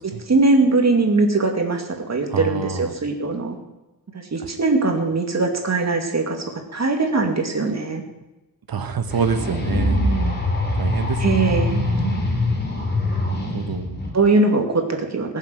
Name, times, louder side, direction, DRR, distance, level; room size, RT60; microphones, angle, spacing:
voice 1, 0.0-3.6 4.1-6.4 6.7-8.0 11.2-11.7 14.1-15.4, right 3 dB, 50° right, 3 dB, 2.4 m, -21 dB
voice 2, 2.3-2.9 4.4-4.6 8.7-10.4 10.7-12.4 13.2-14.0, right 5 dB, 85° right, 9 dB, 1.4 m, -27 dB
sound 1, 9.1-14.1, left 2 dB, 30° left, 3.3 m, -23 dB
19.5 x 7.4 x 6.3 m, 1.0 s
wide cardioid pair, 140°, 35 cm